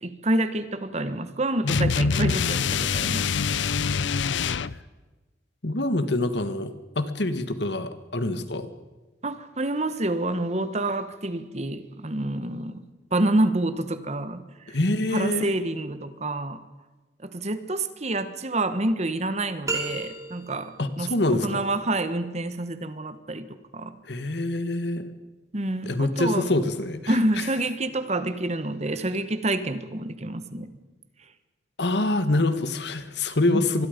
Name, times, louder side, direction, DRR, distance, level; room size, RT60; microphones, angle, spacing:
voice 1, 0.0-3.5 9.2-12.8 13.1-14.8 15.1-16.6 17.2-23.9 25.5-26.5 27.1-30.7 33.5-33.7, right 2 dB, 40° right, 11 dB, 1.3 m, -28 dB
sound 1, 1.7-4.8, left 5 dB, 85° left, 0.6 m, -25 dB
voice 2, 5.6-8.7 14.7-15.5 20.8-21.6 24.1-25.1 25.8-27.1 31.8-33.9, left 2 dB, 65° left, 11 dB, 1.6 m, -25 dB
sound 2, 19.7-20.8, right 2 dB, 20° right, 3.2 m, -31 dB
25.5 x 21.0 x 5.2 m, 1.2 s
head